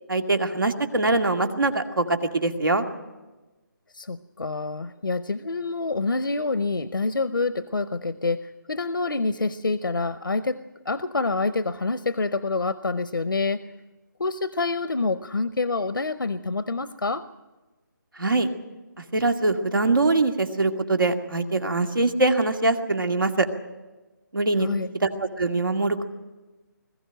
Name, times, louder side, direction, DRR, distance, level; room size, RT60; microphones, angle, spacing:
voice 1, 0.1-2.8 18.2-18.5 19.1-23.5 24.3-24.7 25.0-26.1, right 2 dB, 85° right, 6 dB, 2.1 m, -23 dB
voice 2, 3.9-10.6 10.8-13.6 14.2-17.3 24.6-24.9, left 3 dB, 85° left, 13 dB, 0.7 m, -27 dB
21.0 x 14.5 x 9.0 m, 1.2 s
figure-of-eight pair, 155°, 11 cm